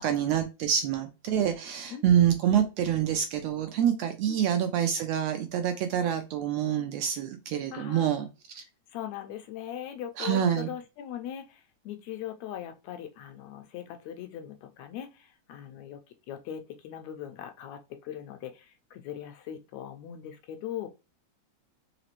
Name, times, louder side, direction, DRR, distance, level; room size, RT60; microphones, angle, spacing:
voice 1, 0.0-8.3 8.6-8.7 10.2-10.7, right 9 dB, 80° right, 6 dB, 1.5 m, -26 dB
voice 2, 7.7-8.1 8.9-16.0 16.3-20.9, left 10 dB, 80° left, 6 dB, 1.8 m, -40 dB
4.9 x 3.0 x 3.0 m, 0.28 s
omnidirectional pair, 3.4 m